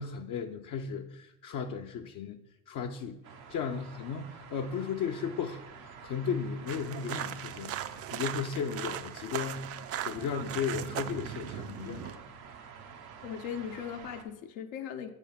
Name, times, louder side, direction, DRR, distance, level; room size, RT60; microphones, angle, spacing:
voice 1, 0.0-2.4 2.7-9.7 10.1-12.2, left 6 dB, 50° left, 2 dB, 0.7 m, -35 dB
sound 1, 3.2-14.2, right 6 dB, 90° right, 0.9 m, -49 dB
sound 2, 6.7-12.2, right 10 dB, 35° right, 0.4 m, -38 dB
voice 2, 13.2-15.1, left 8 dB, 75° left, 5 dB, 1.0 m, -38 dB
8.4 x 3.6 x 5.8 m, 0.89 s
hypercardioid pair, 75°, 41 cm